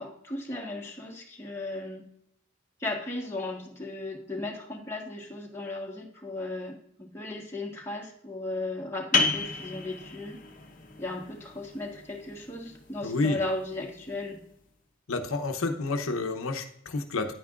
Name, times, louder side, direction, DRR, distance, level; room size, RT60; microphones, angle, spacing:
voice 1, 0.0-2.1 2.8-10.4 11.0-14.4, left 2 dB, 10° left, -2 dB, 1.4 m, -36 dB
sound 1, 9.1-14.5, left 4 dB, 40° left, 0.9 m, -33 dB
voice 2, 13.0-13.4 15.1-17.3, left 3 dB, 80° left, 5 dB, 0.8 m, -29 dB
10.0 x 9.3 x 2.5 m, 0.69 s
head